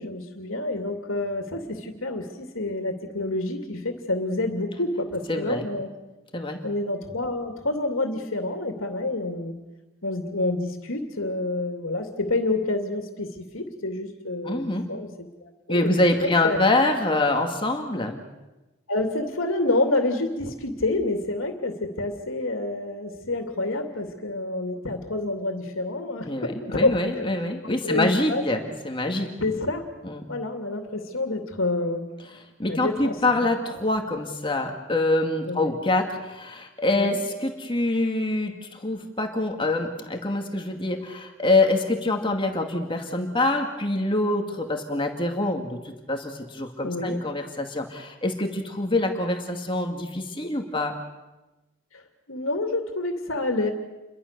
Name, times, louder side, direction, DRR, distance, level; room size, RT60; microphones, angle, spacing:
voice 1, 0.0-5.9 6.6-9.5 10.0-16.9 18.9-27.2 27.6-28.5 29.4-29.9 30.3-32.1 32.7-33.5 35.5-35.8 36.9-37.2 46.8-47.2 51.9-52.0 52.3-53.7, left 2 dB, 75° left, 5 dB, 2.7 m, -28 dB
voice 2, 5.3-5.6 6.3-6.6 14.4-14.9 15.7-18.2 26.3-29.4 30.0-30.2 32.6-50.9, left 2 dB, 25° left, 3 dB, 2.2 m, -25 dB
29.5 x 23.5 x 6.8 m, 1.1 s
head